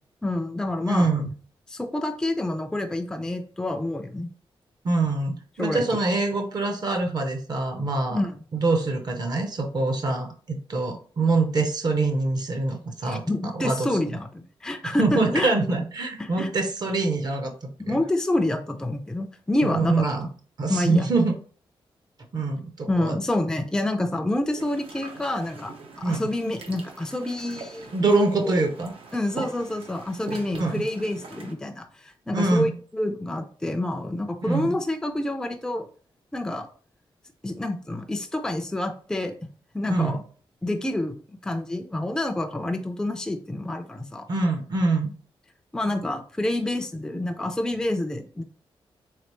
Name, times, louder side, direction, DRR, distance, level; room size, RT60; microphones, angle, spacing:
voice 1, 0.2-1.1 1.7-4.3 5.6-5.9 8.1-8.3 13.0-15.5 16.2-16.5 17.8-20.0 20.7-21.1 22.9-27.9 28.4-28.5 29.1-35.9 36.3-36.7 37.4-39.4 39.7-40.2 40.6-41.2 41.4-44.3 45.7-48.4, left 1 dB, 5° left, 5 dB, 0.4 m, -28 dB
voice 2, 0.9-1.3 4.8-8.2 8.5-13.2 13.5-13.9 14.8-18.0 19.6-20.3 20.6-21.3 22.3-23.2 26.0-26.2 27.9-28.9 30.5-30.8 32.3-32.7 34.4-34.8 39.9-40.2 44.3-45.1, right 3 dB, 45° right, 5 dB, 0.6 m, -24 dB
sound 1, 24.6-31.5, right 4 dB, 85° right, 0.8 m, -42 dB
3.4 x 3.2 x 2.9 m, 0.42 s
wide cardioid pair, 125°, 9 cm